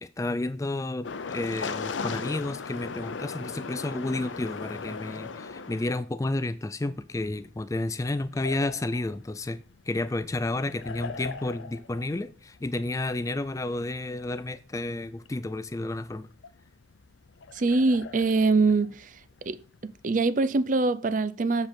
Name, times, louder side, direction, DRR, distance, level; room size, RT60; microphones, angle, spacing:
voice 1, 0.2-9.6 9.9-16.3, left 2 dB, 15° left, 0.3 m, -31 dB
sound 1, 1.0-6.0 6.8-20.0, left 4 dB, 85° left, 0.6 m, -40 dB
voice 2, 17.5-19.1 19.5-19.6 19.8-21.7, right 3 dB, 45° right, 0.5 m, -24 dB
7.7 x 6.7 x 4.4 m
head